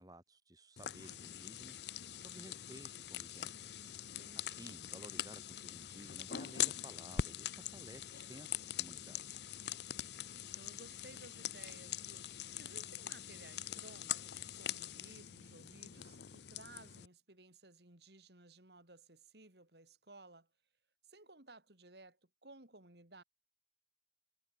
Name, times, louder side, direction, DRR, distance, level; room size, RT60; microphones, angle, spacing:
voice 1, 0.0-1.8 2.2-3.6 4.4-9.2, right 1 dB, 20° right, 5.0 m, -55 dB
sound 1, 0.8-17.1, left 10 dB, 70° left, 0.6 m, -43 dB
voice 2, 4.2-4.7 10.3-20.5 21.0-23.2, right 2 dB, 65° right, 3.7 m, -58 dB
head